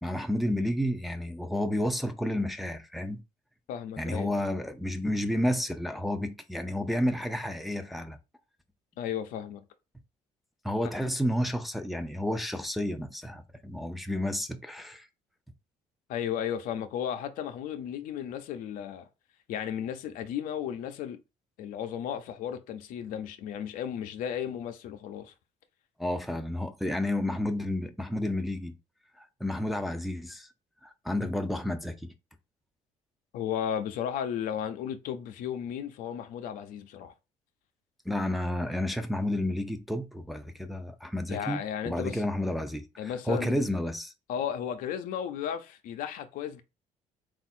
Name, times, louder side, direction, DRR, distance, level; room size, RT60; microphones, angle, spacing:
voice 1, 0.0-3.2 4.0-8.2 10.6-15.1 26.0-28.8 29.2-30.5 30.8-32.1 38.1-44.1, left 1 dB, ahead, 0.6 m, -31 dB
voice 2, 3.7-4.3 9.0-9.6 16.1-19.1 19.5-21.2 21.6-25.3 33.3-37.1 41.3-42.2 43.0-43.7 44.3-46.6, left 9 dB, 80° left, 0.6 m, -34 dB
3.5 x 2.5 x 4.2 m
cardioid pair, 95°, 14 cm